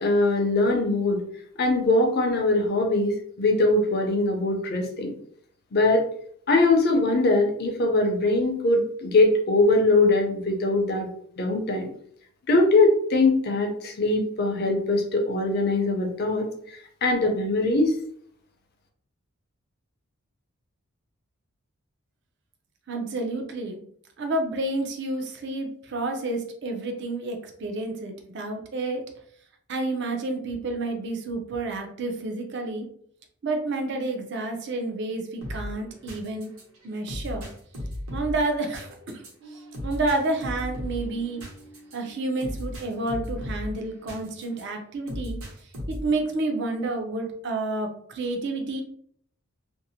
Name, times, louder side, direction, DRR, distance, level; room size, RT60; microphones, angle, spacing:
voice 1, 0.0-1.2 1.6-5.2 5.7-6.0 6.5-11.1 11.4-11.9 12.5-17.9, left 2 dB, 45° left, 2 dB, 0.5 m, -22 dB
voice 2, 22.9-23.8 24.2-29.0 29.7-32.9 33.4-36.5 36.8-37.5 38.1-38.9 39.8-41.4 41.9-45.4 45.9-48.8, right 2 dB, 50° right, 4 dB, 0.5 m, -29 dB
sound 1, 35.4-44.6 45.1-46.2, left 1 dB, 70° right, 0.8 m, -36 dB
2.6 x 2.0 x 2.7 m, 0.63 s
head